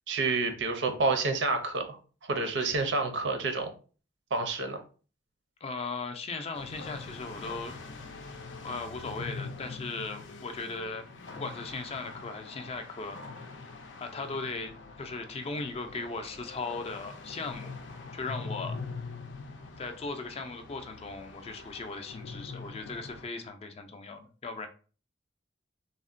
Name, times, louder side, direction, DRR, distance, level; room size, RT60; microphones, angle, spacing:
voice 1, 0.1-2.0 2.2-3.7 4.3-4.8, right 3 dB, 75° right, 6 dB, 0.6 m, -29 dB
voice 2, 5.6-7.8 8.6-11.0 11.3-13.2 14.0-14.7 15.0-17.7 18.1-18.8 19.8-24.7, left 3 dB, 35° left, 6 dB, 0.4 m, -38 dB
sound 1, 6.5-23.3, left 4 dB, 90° left, 0.5 m, -43 dB
3.5 x 2.1 x 2.5 m, 0.38 s
head